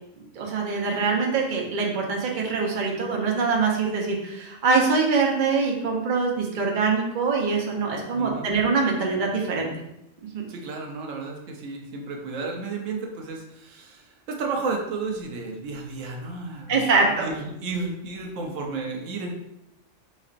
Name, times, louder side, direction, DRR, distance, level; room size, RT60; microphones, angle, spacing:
voice 1, 0.4-9.7 16.7-17.3, right 4 dB, 45° right, 0 dB, 0.8 m, -24 dB
voice 2, 8.1-8.5 10.5-16.8 17.2-19.3, right 4 dB, 80° right, 1 dB, 1.1 m, -32 dB
4.3 x 4.1 x 2.5 m, 0.84 s
omnidirectional pair, 1.3 m